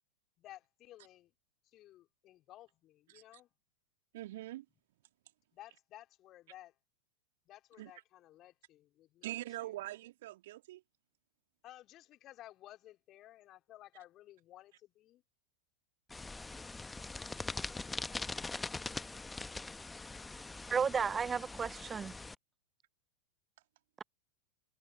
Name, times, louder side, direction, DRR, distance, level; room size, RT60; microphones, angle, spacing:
voice 1, 0.4-1.3 1.6-3.5 5.5-6.8 7.5-9.8 11.6-15.2, left 14 dB, 35° left, 4.2 m, -56 dB
voice 2, 4.1-4.6 7.8-7.9 9.2-10.8, right 16 dB, 55° right, 2.8 m, -43 dB
sound 1, 16.1-22.3, left 3 dB, 10° left, 1.3 m, -42 dB
voice 3, 20.7-22.1 24.0-24.1, right 6 dB, 20° right, 0.6 m, -33 dB
figure-of-eight pair, 90°, 0 cm